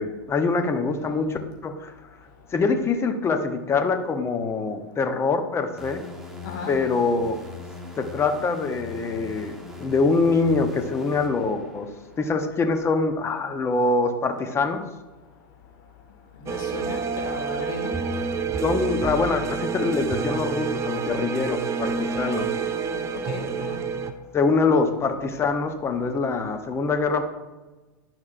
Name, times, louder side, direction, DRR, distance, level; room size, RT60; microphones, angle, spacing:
voice 1, 0.0-1.9 2.5-6.0 6.7-7.4 8.0-9.5 9.8-11.9 12.2-14.8 18.6-22.5 24.3-27.2, left 4 dB, 20° left, 0.8 m, -24 dB
sound 1, 5.8-12.3, left 3 dB, 5° right, 1.3 m, -41 dB
voice 2, 6.4-6.7 16.4-18.0 21.9-23.9, left 3 dB, 65° left, 1.5 m, -36 dB
sound 2, 16.5-24.1, right 5 dB, 25° right, 0.6 m, -28 dB
10.5 x 6.1 x 2.5 m
hypercardioid pair, 110°, 12 cm